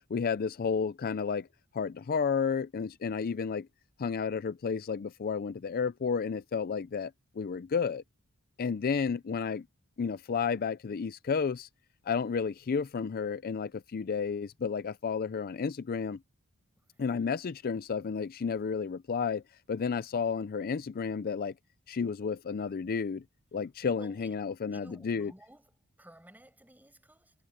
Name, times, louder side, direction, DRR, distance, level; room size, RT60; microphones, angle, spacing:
voice 1, 0.1-1.5 1.7-3.7 4.0-7.1 7.4-8.0 8.6-9.7 10.0-11.7 12.1-16.2 17.0-19.4 19.7-21.5 21.9-23.2 23.5-25.3, left 6 dB, 40° left, 0.4 m, -31 dB
voice 2, 16.8-17.2 20.7-20.9 23.9-24.4 24.7-27.3, right 1 dB, 10° right, 7.9 m, -55 dB
head